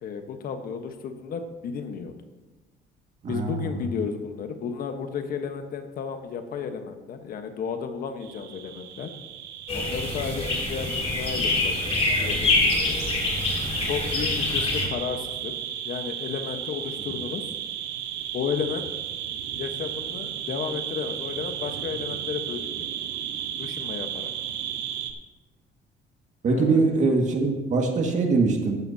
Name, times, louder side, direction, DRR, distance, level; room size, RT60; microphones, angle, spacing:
voice 1, 0.0-2.1 3.3-9.1 9.7-13.0 13.8-15.6 15.8-17.5 18.3-18.9 19.5-22.9 23.6-24.3 26.5-26.8, left 6 dB, 60° left, 7 dB, 1.2 m, -33 dB
voice 2, 3.2-3.7 26.4-28.8, right 3 dB, 45° right, 2 dB, 1.9 m, -22 dB
sound 1, 8.2-25.1, right 9 dB, 80° right, 1.0 m, -34 dB
sound 2, 9.7-14.9, left 3 dB, 35° left, 3.1 m, -25 dB
13.5 x 11.0 x 2.8 m, 1.2 s
cardioid pair, 110°, 17 cm